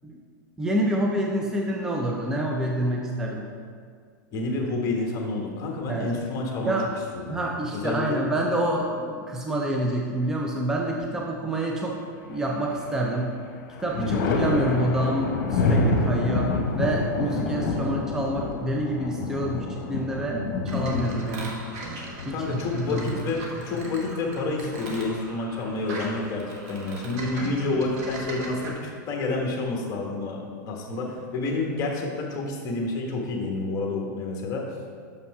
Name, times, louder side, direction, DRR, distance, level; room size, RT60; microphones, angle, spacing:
voice 1, 0.6-3.5 5.9-6.1 6.7-6.9 7.3-12.0 12.2-13.4 13.8-20.4 20.7-21.6 22.3-23.3 27.2-27.5, right 1 dB, 5° right, -1 dB, 0.5 m, -27 dB
voice 2, 4.3-6.7 7.1-8.2 14.0-14.3 20.3-20.6 22.3-34.6, left 3 dB, 30° left, 0 dB, 1.3 m, -29 dB
Thunder, 12.3-13.1 13.4-23.0 24.5-25.3, left 3 dB, 55° left, 1.2 m, -27 dB
sound 1, 20.7-28.7, right 2 dB, 50° right, 1.4 m, -39 dB
6.4 x 5.7 x 4.8 m, 2.1 s
supercardioid pair, 145°, 11 cm